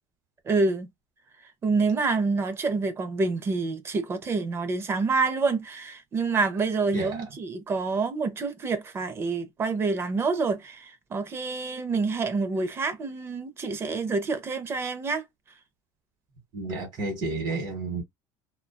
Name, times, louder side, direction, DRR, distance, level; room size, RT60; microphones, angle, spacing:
voice 1, 0.5-0.9 1.6-15.2, right 4 dB, 25° right, 0.5 m, -27 dB
voice 2, 6.9-7.2 16.5-18.0, right 3 dB, 40° right, 0.9 m, -31 dB
2.6 x 2.2 x 2.2 m
cardioid pair, 145°, 10 cm